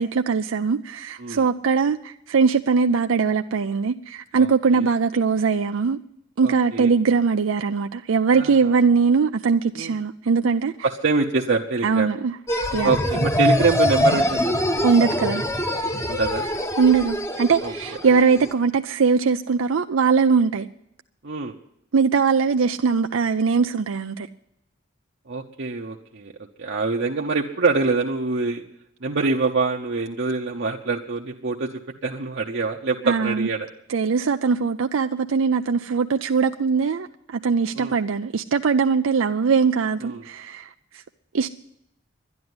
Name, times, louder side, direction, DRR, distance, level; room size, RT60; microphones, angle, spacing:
voice 1, 0.0-6.0 6.4-10.7 11.8-12.3 12.7-12.9 14.8-15.5 16.8-20.7 21.9-24.3 33.1-33.5 33.9-40.7 41.3-41.5, right 5 dB, 85° right, 0.5 m, -21 dB
voice 2, 4.4-4.9 6.4-6.9 8.3-8.7 9.7-10.0 10.8-12.1 12.8-14.7 16.1-16.5 17.6-17.7 21.2-21.5 25.3-26.3 26.6-28.6 29.0-31.7 32.0-33.7 37.7-38.0 40.0-40.2, right 3 dB, 60° right, 0.8 m, -25 dB
sound 1, 12.5-18.5, left 1 dB, 15° left, 0.9 m, -23 dB
11.5 x 11.0 x 9.7 m
head